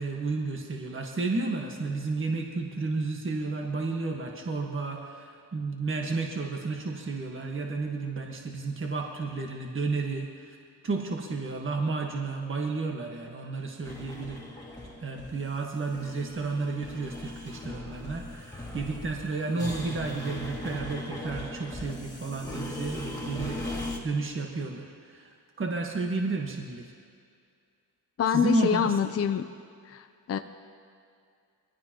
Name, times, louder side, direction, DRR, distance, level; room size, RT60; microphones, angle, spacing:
voice 1, 0.0-10.6 10.8-14.5 15.0-26.9 28.3-28.9, right 3 dB, 30° right, 1 dB, 1.5 m, -32 dB
sound 1, 13.8-24.0, left 1 dB, 10° left, 2.4 m, -39 dB
voice 2, 28.2-29.5 29.9-30.4, left 8 dB, 35° left, 8 dB, 0.6 m, -26 dB
22.0 x 15.0 x 3.0 m, 2.3 s
cardioid pair, 85°, 41 cm